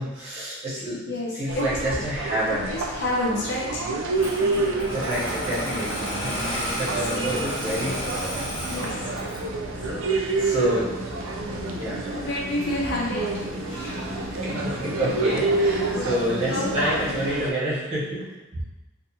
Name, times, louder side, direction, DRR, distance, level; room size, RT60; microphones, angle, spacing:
voice 1, 0.0-2.7 4.9-8.0 8.6-9.0 10.3-11.2 11.8-12.3 14.3-18.6, right 1 dB, 30° right, -8 dB, 0.8 m, -29 dB
voice 2, 1.1-1.6 2.5-4.0 4.5-4.9 7.1-7.5 8.7-9.5 9.8-10.5 12.1-14.2 15.9-16.1 16.5-16.7, left 1 dB, 55° left, -4 dB, 0.5 m, -30 dB
sound 1, 1.5-17.5, right 3 dB, 85° right, 0.4 m, -29 dB
Engine starting, 4.1-9.5, equal, 85° left, 1.0 m, -31 dB
sound 2, 5.1-17.3, left 2 dB, ahead, 0.4 m, -38 dB
2.5 x 2.4 x 2.7 m, 1.0 s
head